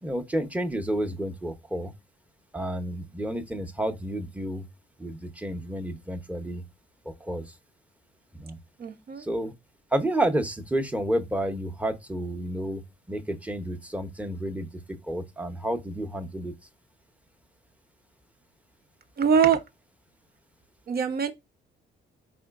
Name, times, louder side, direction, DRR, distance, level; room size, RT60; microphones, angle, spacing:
voice 1, 0.0-1.9 2.5-4.6 5.0-6.6 7.0-7.5 8.4-8.6 9.2-9.5 9.9-12.8 13.1-14.7 15.1-16.5, right 1 dB, 5° right, 0.8 m, -30 dB
voice 2, 8.8-9.2 19.2-19.6 20.9-21.3, right 7 dB, 50° right, 0.8 m, -23 dB
4.2 x 3.8 x 2.4 m
cardioid pair, 90°, 20 cm